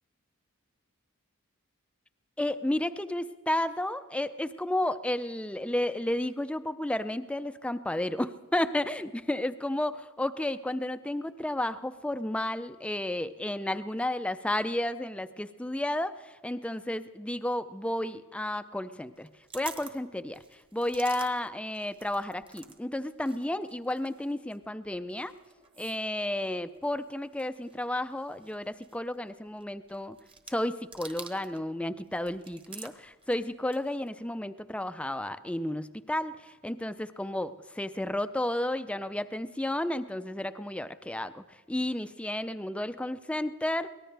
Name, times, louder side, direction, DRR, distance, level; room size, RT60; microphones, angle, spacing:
voice 1, 2.4-19.3 19.5-25.3 25.8-30.2 30.5-43.9, left 1 dB, 5° left, 12 dB, 0.4 m, -32 dB
sound 1, 19.2-22.8 23.0-31.7 32.0-34.1, right 5 dB, 25° right, 1.1 m, -50 dB
23.5 x 18.0 x 3.3 m, 1.4 s
head